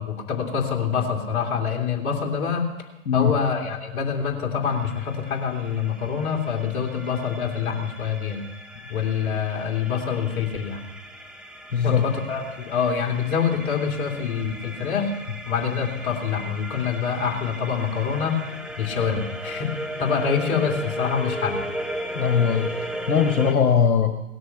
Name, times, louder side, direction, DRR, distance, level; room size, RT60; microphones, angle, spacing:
voice 1, 0.0-2.7 3.1-8.4 8.9-10.8 11.8-15.1 15.5-18.4 18.8-21.6, left 6 dB, 45° left, -1 dB, 2.7 m, -26 dB
sound 1, 4.6-23.5, equal, ahead, 0.7 m, -36 dB
voice 2, 11.7-12.1 22.1-22.7 23.1-24.1, left 7 dB, 80° left, 5 dB, 1.5 m, -20 dB
18.0 x 13.0 x 5.9 m, 0.93 s
hypercardioid pair, 125°, 43 cm